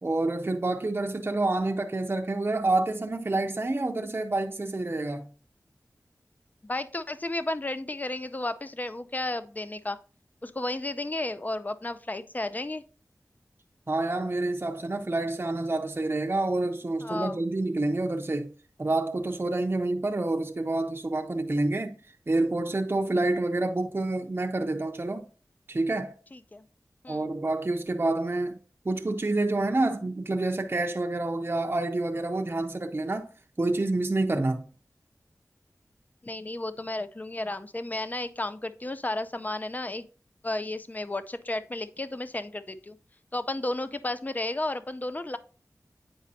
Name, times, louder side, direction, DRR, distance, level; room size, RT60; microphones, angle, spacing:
voice 1, 0.0-5.3 13.9-18.5 18.8-22.0 22.3-25.2 25.7-26.1 27.1-28.6 28.8-33.3 33.6-34.6, right 2 dB, 35° right, 0.6 m, -28 dB
voice 2, 6.6-10.0 10.4-12.8 17.0-17.4 26.3-26.6 27.0-27.3 36.2-40.1 40.4-43.0 43.3-45.4, left 2 dB, 25° left, 0.5 m, -33 dB
8.6 x 5.1 x 2.7 m
wide cardioid pair, 70°, 6 cm